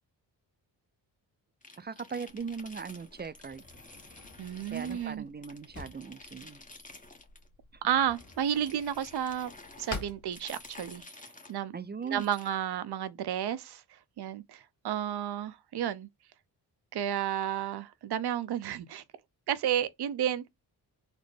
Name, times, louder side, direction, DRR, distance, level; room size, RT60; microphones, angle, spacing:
sound 1, 1.6-5.2 5.4-7.5 8.1-11.6 12.0-12.6, left 2 dB, 20° left, 1.0 m, -51 dB
voice 1, 1.8-3.6 4.7-6.6 7.7-7.8 11.7-12.3, right 5 dB, 25° right, 0.4 m, -39 dB
Drawer open or close, 2.3-11.0, left 3 dB, 40° left, 1.5 m, -48 dB
voice 2, 4.4-5.2 7.8-9.5 9.8-11.0 11.5-11.8 12.0-16.1 16.9-19.0 19.5-20.5, right 10 dB, 60° right, 0.7 m, -32 dB
4.2 x 2.1 x 3.2 m
cardioid pair, 60°, 43 cm